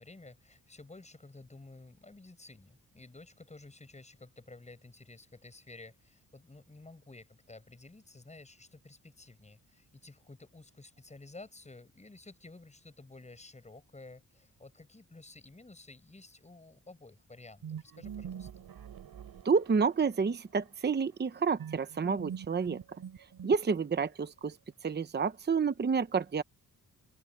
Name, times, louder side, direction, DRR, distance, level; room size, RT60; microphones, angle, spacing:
voice 1, 0.0-18.6, left 2 dB, 20° left, 8.0 m, -52 dB
sound 1, 17.6-20.2 21.6-24.0, right 8 dB, 90° right, 3.7 m, -44 dB
voice 2, 19.4-22.8 23.4-24.6 24.8-26.4, right 5 dB, 30° right, 0.8 m, -29 dB
open air
wide cardioid pair, 145°, 36 cm